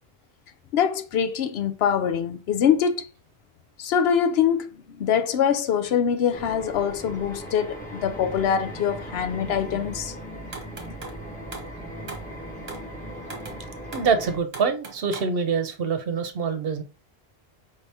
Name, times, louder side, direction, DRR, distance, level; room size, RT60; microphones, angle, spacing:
voice 1, 0.7-3.1 3.8-10.1, left 8 dB, 85° left, 0.8 m, -24 dB
sound 1, 6.3-14.4, equal, 10° left, 1.1 m, -38 dB
sound 2, 10.5-11.2 11.5-11.8 12.1-12.3 12.7-12.9 13.2-13.6 13.9-14.1 14.5-15.3, right 3 dB, 40° right, 1.1 m, -39 dB
voice 2, 13.9-16.8, right 5 dB, 70° right, 0.9 m, -25 dB
5.3 x 2.8 x 3.3 m
omnidirectional pair, 1.0 m